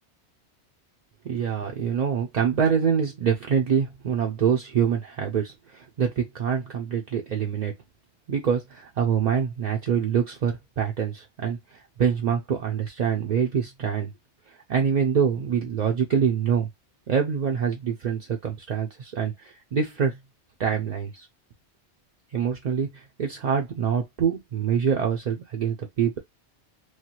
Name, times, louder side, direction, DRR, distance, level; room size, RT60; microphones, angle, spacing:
voice 1, 1.2-7.7 8.3-14.1 14.7-16.7 17.1-20.2 20.6-21.3 22.3-26.2, right 7 dB, 55° right, 0.5 m, -25 dB
3.2 x 2.3 x 2.8 m
omnidirectional pair, 1.2 m